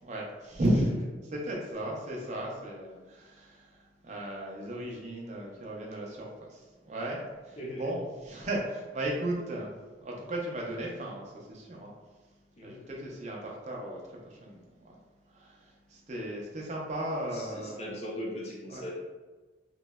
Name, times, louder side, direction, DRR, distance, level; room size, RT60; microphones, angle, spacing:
voice 1, 0.0-0.9 1.2-9.7 10.0-11.9 12.6-15.0 15.3-17.8 18.7-18.9, right 1 dB, 40° right, -2 dB, 0.5 m, -35 dB
voice 2, 12.6-12.9 17.3-18.9, equal, 35° left, -3 dB, 0.5 m, -39 dB
3.0 x 2.0 x 2.2 m, 1.2 s
head